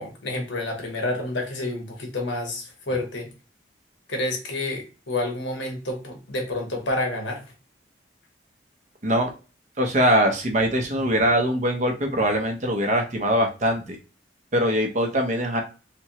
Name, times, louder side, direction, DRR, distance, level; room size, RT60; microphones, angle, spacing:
voice 1, 0.0-3.3 4.1-7.5, left 2 dB, 85° left, 2 dB, 1.2 m, -29 dB
voice 2, 9.8-14.0 14.5-15.6, equal, 40° right, 3 dB, 0.8 m, -22 dB
3.4 x 3.1 x 2.9 m, 0.31 s
head